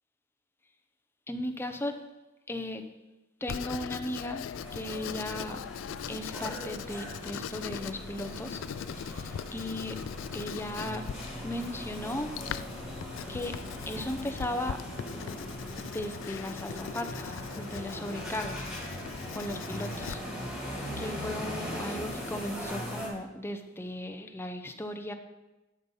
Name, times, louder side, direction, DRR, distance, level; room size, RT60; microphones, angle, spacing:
voice 1, 1.3-2.0 2.5-2.9 3.4-4.5 4.7-5.6 6.1-8.6 9.0-10.0 10.3-11.0 11.4-12.3 13.3-13.6 13.9-14.8 15.8-18.7 19.3-20.2 21.0-25.1, left 1 dB, 10° left, 6 dB, 0.7 m, -36 dB
Writing, 3.5-20.1, left 8 dB, 85° left, 0.3 m, -41 dB
sound 1, 4.5-23.1, equal, 5° right, 3.4 m, -40 dB
12.5 x 5.3 x 5.5 m, 1.1 s
head